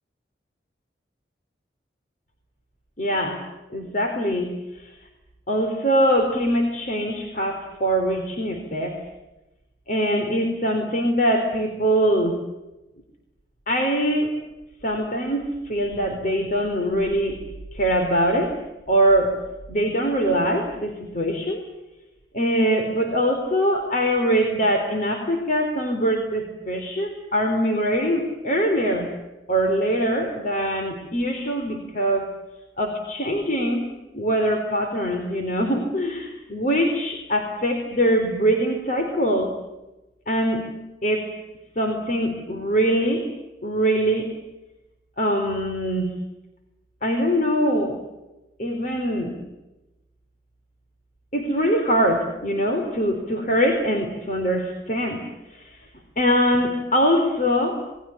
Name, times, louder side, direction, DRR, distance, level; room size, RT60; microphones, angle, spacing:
voice 1, 3.0-3.4 3.7-4.9 5.5-9.0 9.9-12.4 13.7-14.4 14.8-17.4 17.7-18.5 18.9-19.4 19.7-21.6 22.3-29.1 29.5-32.3 32.8-33.9 34.1-39.5 40.3-40.7 41.0-41.3 41.8-43.3 43.6-44.3 45.2-46.2 47.0-48.0 48.6-49.4 51.3-55.2 55.5-55.8 56.2-57.8, equal, 45° left, 3 dB, 4.0 m, -23 dB
28.0 x 22.0 x 8.7 m, 1.0 s
head